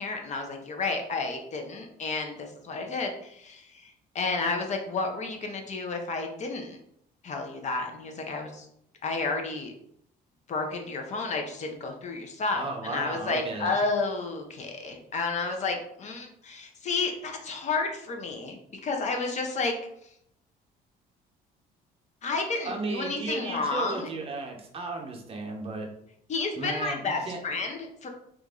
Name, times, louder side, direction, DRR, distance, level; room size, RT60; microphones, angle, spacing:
voice 1, 0.0-6.8 7.2-8.7 9.0-9.7 10.5-19.7 22.2-24.1 26.3-28.1, left 3 dB, 45° left, 3 dB, 0.6 m, -31 dB
voice 2, 12.5-13.8 22.5-25.9 26.5-27.4, right 3 dB, 35° right, 1 dB, 0.7 m, -35 dB
3.0 x 2.5 x 3.6 m, 0.73 s
cardioid pair, 110°, 17 cm